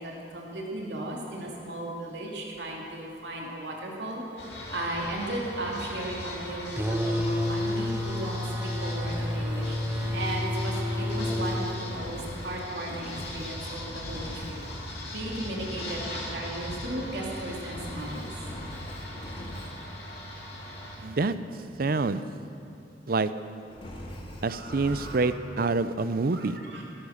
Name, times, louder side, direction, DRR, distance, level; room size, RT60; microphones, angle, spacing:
voice 1, 0.0-8.4 8.8-14.6 14.9-18.3 24.5-25.3 26.3-26.8, right 1 dB, 75° right, -2 dB, 2.8 m, -36 dB
sound 1, 4.4-21.0, left 1 dB, 65° left, 3.2 m, -39 dB
sound 2, 6.8-11.7, left 1 dB, 10° right, 0.7 m, -29 dB
Engine, 9.0-13.7 14.1-14.8 17.6-19.9 23.7-25.3, left 1 dB, 30° left, 1.9 m, -43 dB
voice 2, 21.0-21.3 21.8-22.2 23.1-23.3 24.4-26.6, right 3 dB, 55° right, 13 dB, 0.6 m, -26 dB
17.0 x 12.5 x 6.6 m, 2.6 s
head